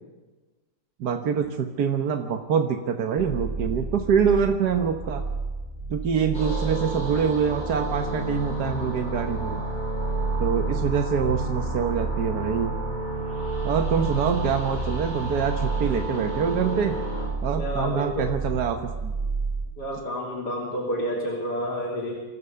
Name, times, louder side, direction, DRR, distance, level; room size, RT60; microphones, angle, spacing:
voice 1, 1.0-5.2 5.9-9.6 10.4-12.8 13.6-17.0 17.4-19.1, right 7 dB, 75° right, 5 dB, 1.7 m, -25 dB
sound 1, 3.2-19.7, right 3 dB, 25° right, 1.7 m, -32 dB
sound 2, 6.3-17.3, right 1 dB, 30° left, 8.1 m, -32 dB
voice 2, 17.5-18.3 19.8-22.2, equal, 90° left, -4 dB, 4.0 m, -29 dB
26.0 x 15.0 x 6.9 m, 1.2 s
omnidirectional pair, 1.7 m